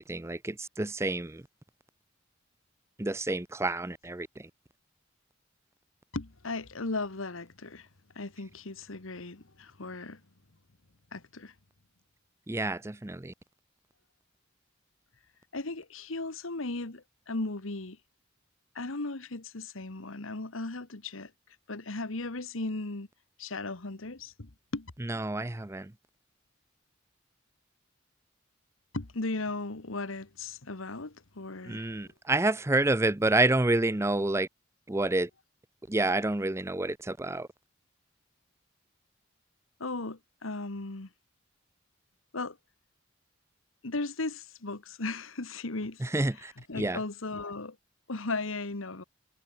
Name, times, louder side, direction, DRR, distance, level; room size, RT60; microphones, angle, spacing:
voice 1, 0.0-1.4 3.0-4.3 12.5-13.3 25.0-25.9 31.6-34.5 34.9-35.3 35.9-37.5 46.0-47.0, right 2 dB, 15° right, 0.6 m, -28 dB
voice 2, 6.1-7.9 8.1-10.2 11.1-11.5 15.5-18.0 18.7-21.3 21.7-23.1 23.4-24.9 28.9-31.9 39.8-41.1 42.3-42.6 43.8-46.0 46.3-47.8 48.1-49.0, left 3 dB, 85° left, 1.6 m, -36 dB
head